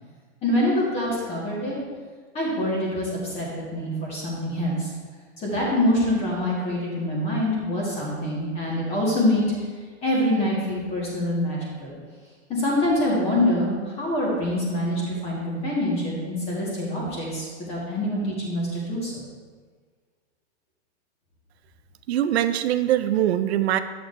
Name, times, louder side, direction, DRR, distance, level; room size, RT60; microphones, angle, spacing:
voice 1, 0.4-1.8 2.3-4.9 5.4-9.4 10.0-11.9 12.5-13.7 14.0-19.2, left 1 dB, 15° left, -5 dB, 1.7 m, -25 dB
voice 2, 22.1-23.8, right 12 dB, 65° right, 11 dB, 0.6 m, -22 dB
10.5 x 7.7 x 2.7 m, 1.6 s
supercardioid pair, 170°, 35 cm